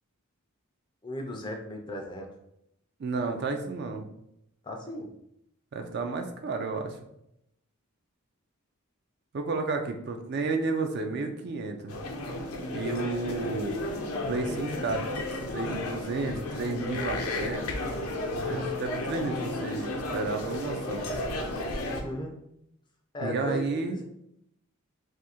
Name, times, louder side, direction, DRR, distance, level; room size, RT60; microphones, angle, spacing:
voice 1, 1.0-2.3 4.6-5.1 21.9-22.3 23.1-24.0, left 1 dB, 20° left, 2 dB, 0.4 m, -36 dB
voice 2, 3.0-4.1 5.7-7.0 9.3-11.9 12.7-13.8 14.3-15.0 15.5-17.7 18.5-21.1 23.2-24.0, right 3 dB, 50° right, 5 dB, 0.4 m, -32 dB
sound 1, 11.9-22.0, left 1 dB, 85° left, 0.6 m, -33 dB
2.6 x 2.4 x 4.2 m, 0.78 s
head